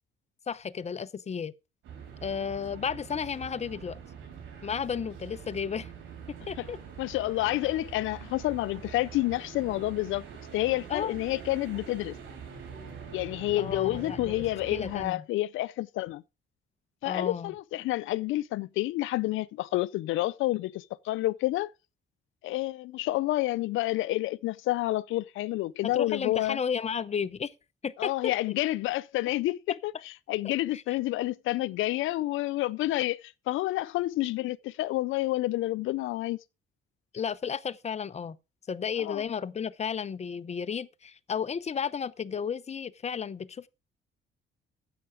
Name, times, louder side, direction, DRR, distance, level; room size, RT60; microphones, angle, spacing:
voice 1, 0.5-1.5 2.2-4.0 4.6-5.9 6.3-6.8 10.9-11.2 13.6-15.2 17.0-17.5 25.8-27.5 27.8-28.3 29.7-29.8 30.4-31.0 37.1-38.4 38.7-43.7, left 7 dB, 35° left, 0.7 m, -33 dB
sound 1, 1.8-15.1, right 6 dB, 85° right, 5.5 m, -44 dB
voice 2, 7.0-10.3 10.5-12.2 13.1-16.2 17.0-21.7 22.4-26.6 28.0-29.9 30.3-36.4 39.0-39.2, left 17 dB, 85° left, 0.4 m, -29 dB
10.5 x 7.8 x 5.0 m
cardioid pair, 90°, 20 cm